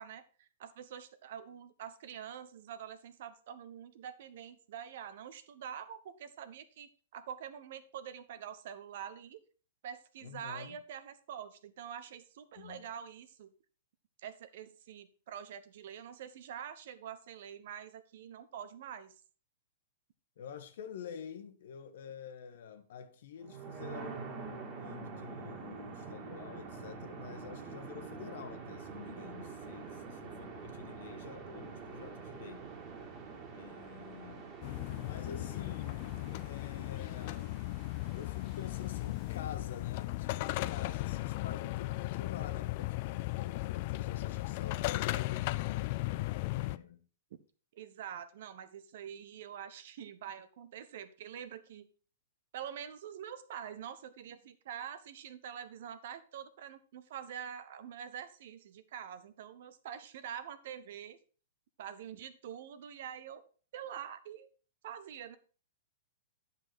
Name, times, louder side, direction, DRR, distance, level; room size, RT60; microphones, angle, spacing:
voice 1, 0.0-9.4 9.8-13.5 14.2-19.1 47.7-51.9 52.5-61.2 61.8-64.5 64.8-65.4, right 9 dB, 60° right, 0.9 m, -46 dB
voice 2, 10.2-10.8 12.5-12.9 20.4-32.8 33.5-34.5 35.0-36.0 36.4-37.6 38.1-47.1, left 7 dB, 65° left, 1.2 m, -48 dB
sound 1, 23.4-39.3, right 5 dB, 35° right, 2.0 m, -46 dB
sound 2, 34.6-46.8, left 19 dB, 50° left, 0.4 m, -36 dB
9.6 x 5.8 x 4.6 m
hypercardioid pair, 120°, 0 cm